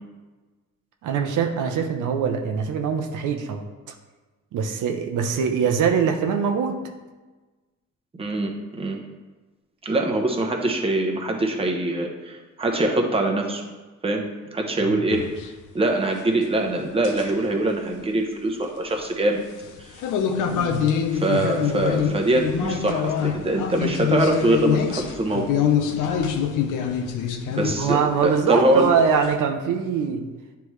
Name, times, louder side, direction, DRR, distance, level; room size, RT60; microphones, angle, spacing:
voice 1, 1.0-3.6 4.5-6.8 20.5-20.9 27.8-30.2, right 6 dB, 80° right, 4 dB, 0.7 m, -23 dB
voice 2, 8.2-9.0 9.8-13.6 14.0-15.3 15.7-19.4 19.8-19.9 21.1-25.5 27.6-28.9, right 1 dB, 20° right, 1 dB, 0.9 m, -23 dB
sound 1, 15.1-15.5 17.0-17.4 19.6-28.3 28.8-29.3, left 7 dB, 90° left, 0.7 m, -25 dB
9.6 x 3.5 x 3.1 m, 1.2 s
cardioid pair, 110°, 30 cm